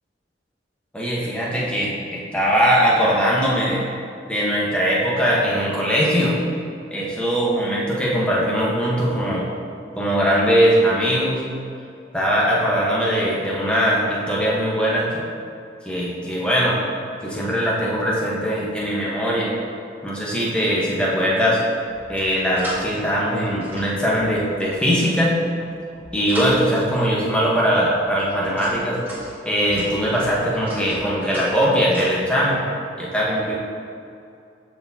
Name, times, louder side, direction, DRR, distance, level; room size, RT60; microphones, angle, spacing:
voice 1, 0.9-3.8 4.3-6.4 6.9-9.4 10.0-11.4 12.1-15.2 15.8-16.8 17.2-19.5 20.0-21.6 22.1-25.3 26.1-29.0 29.4-32.6 33.0-33.5, equal, 5° left, -6 dB, 1.1 m, -20 dB
sound 1, 21.9-23.0 23.4-24.7 25.4-27.2 27.8-32.2, equal, 10° right, 1.7 m, -36 dB
13.0 x 4.3 x 2.8 m, 2.5 s
head